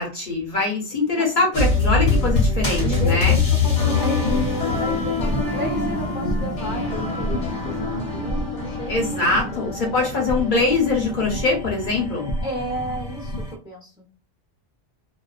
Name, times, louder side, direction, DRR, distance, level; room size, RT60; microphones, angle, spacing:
voice 1, 0.0-3.4 8.9-12.3, left 3 dB, 50° left, -1 dB, 0.8 m, -23 dB
voice 2, 1.0-1.7 2.8-8.9 9.3-9.8 12.4-14.1, right 1 dB, 5° right, -2 dB, 0.6 m, -33 dB
sound 1, 1.5-13.5, left 3 dB, 90° left, 1.2 m, -24 dB
2.3 x 2.2 x 2.3 m, 0.35 s
omnidirectional pair, 1.2 m